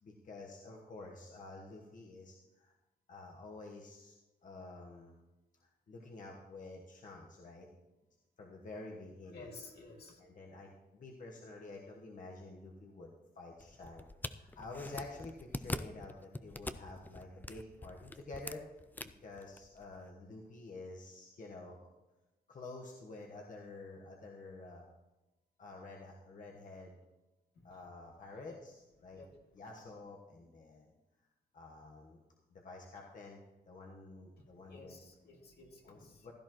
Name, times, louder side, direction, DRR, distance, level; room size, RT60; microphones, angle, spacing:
voice 1, 0.0-2.7 3.1-4.2 4.4-5.1 5.6-7.7 8.4-9.5 10.2-18.6 19.0-21.9 22.5-24.8 25.6-27.0 27.6-29.2 29.5-30.9 31.5-32.2 32.5-35.0 35.8-36.3, left 2 dB, 50° left, -1 dB, 1.3 m, -50 dB
voice 2, 9.3-10.2 27.6-27.7 28.5-28.6 29.1-29.3 34.7-36.3, left 3 dB, 75° left, 0 dB, 2.3 m, -53 dB
sound 1, 13.6-20.1, left 2 dB, 10° left, 0.4 m, -45 dB
15.5 x 13.0 x 3.0 m, 1.0 s
wide cardioid pair, 140°, 17 cm